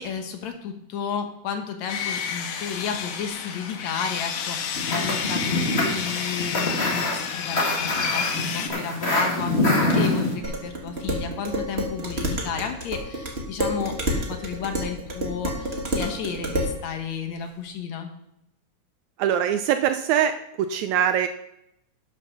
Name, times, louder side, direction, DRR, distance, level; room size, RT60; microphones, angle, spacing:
voice 1, 0.0-18.1, left 6 dB, 65° left, 5 dB, 2.2 m, -32 dB
Sawing, 1.9-8.7, left 7 dB, 85° left, 2.6 m, -30 dB
sound 1, 4.7-10.3, left 2 dB, 25° left, 1.6 m, -25 dB
Dishes pots and pans, 10.4-16.8, equal, 30° right, 1.2 m, -29 dB
voice 2, 19.2-20.3 20.6-21.3, right 9 dB, 80° right, 9 dB, 1.7 m, -22 dB
12.0 x 6.2 x 6.0 m, 0.80 s
omnidirectional pair, 3.6 m